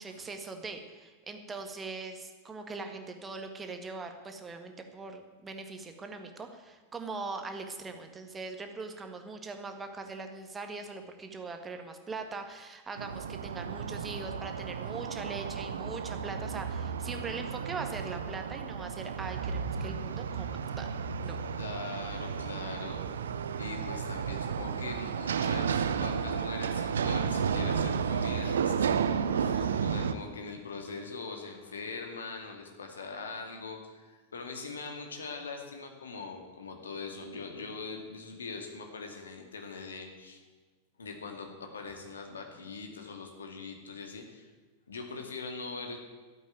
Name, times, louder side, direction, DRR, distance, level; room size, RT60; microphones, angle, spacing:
voice 1, 0.0-20.9 21.2-21.4 29.5-29.9, right 3 dB, 15° right, 5 dB, 1.7 m, -41 dB
sound 1, 13.0-30.1, right 6 dB, 65° right, 0.7 m, -32 dB
voice 2, 21.6-23.0 23.6-28.9 29.3-40.4 41.0-44.5 44.9-46.0, left 4 dB, 70° left, 4 dB, 2.2 m, -42 dB
13.0 x 8.4 x 9.1 m, 1.3 s
figure-of-eight pair, 90°, 0 cm